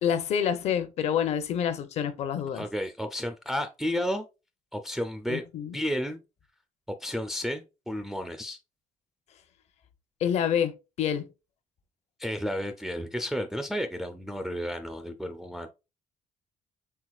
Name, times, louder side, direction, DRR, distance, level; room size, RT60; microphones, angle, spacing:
voice 1, 0.0-2.6 5.3-5.7 10.2-11.3, left 8 dB, 60° left, 0.8 m, -27 dB
voice 2, 2.5-4.3 4.7-5.4 5.7-6.2 6.9-8.6 12.2-15.7, equal, ahead, 0.3 m, -32 dB
4.6 x 3.6 x 2.3 m
cardioid pair, 150°, 13 cm